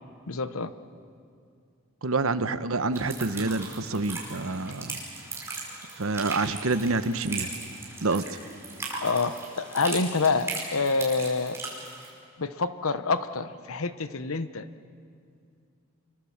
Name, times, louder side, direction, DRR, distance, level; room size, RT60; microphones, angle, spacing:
voice 1, 0.3-0.7 9.0-11.6 12.4-14.7, left 4 dB, 90° left, 13 dB, 1.0 m, -27 dB
voice 2, 2.0-5.0 6.0-7.5 8.0-8.4, right 3 dB, 80° right, 12 dB, 1.1 m, -27 dB
sound 1, 2.9-12.1, right 3 dB, 10° right, 5.0 m, -38 dB
26.0 x 23.0 x 7.3 m, 2.4 s
head